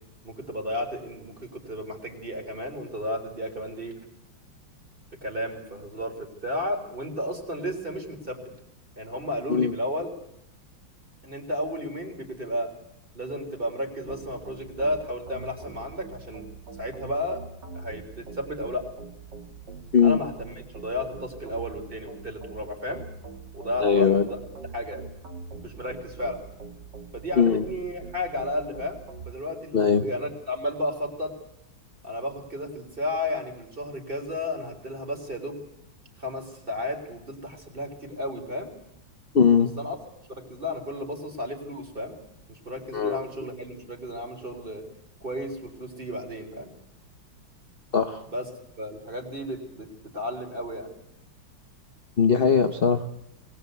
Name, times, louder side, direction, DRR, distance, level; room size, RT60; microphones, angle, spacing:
voice 1, 0.2-4.0 5.2-8.4 9.0-10.1 11.2-12.7 13.1-16.5 16.8-17.4 17.7-18.9 20.0-20.5 20.8-23.1 23.5-24.4 24.7-25.0 25.6-26.4 27.1-31.3 32.0-35.6 36.2-38.7 39.8-40.0 40.3-42.2 42.5-44.8 45.2-46.7 48.3-48.5 48.8-50.9, left 1 dB, 25° right, 3 dB, 3.9 m, -33 dB
sound 1, 14.1-29.3, right 4 dB, 60° right, 3.3 m, -43 dB
voice 2, 23.8-24.3 27.4-27.6 29.7-30.0 39.3-39.7 42.9-43.2 47.9-48.2 52.2-53.0, left 6 dB, 40° left, 6 dB, 0.8 m, -20 dB
21.5 x 19.5 x 8.2 m, 0.78 s
omnidirectional pair, 2.2 m